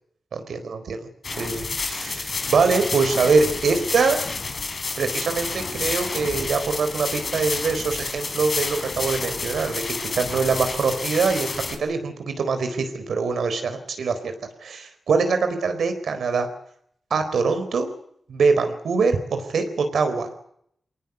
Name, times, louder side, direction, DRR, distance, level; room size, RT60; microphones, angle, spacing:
voice 1, 0.3-1.1 1.4-4.2 5.0-14.3 14.6-16.5 17.1-17.9 18.3-20.3, right 4 dB, 85° right, 8 dB, 4.2 m, -23 dB
sound 1, 1.2-11.8, left 3 dB, 60° left, 4.4 m, -29 dB
23.5 x 19.0 x 8.2 m, 0.70 s
cardioid pair, 40°, 0 cm